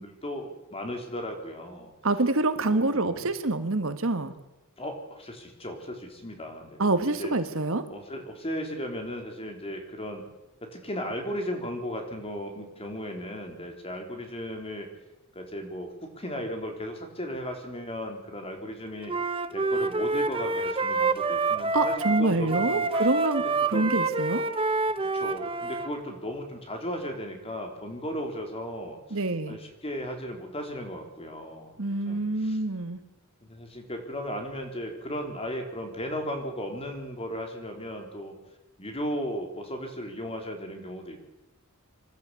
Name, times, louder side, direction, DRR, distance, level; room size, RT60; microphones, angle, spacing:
voice 1, 0.0-1.9 2.7-3.3 4.8-6.8 7.1-7.3 7.9-10.2 10.6-14.9 15.3-19.1 19.5-22.9 23.7-23.9 25.0-29.2 29.5-31.7 32.1-32.6 33.4-38.3 38.8-41.3, equal, 25° left, 3 dB, 3.9 m, -36 dB
voice 2, 2.0-4.3 6.8-7.9 21.7-24.5 29.1-29.6 31.8-33.0, right 2 dB, 70° right, 10 dB, 1.5 m, -26 dB
Wind instrument woodwind instrument, 19.1-25.9, right 3 dB, 25° right, 1.1 m, -27 dB
26.5 x 12.0 x 8.3 m, 0.99 s
head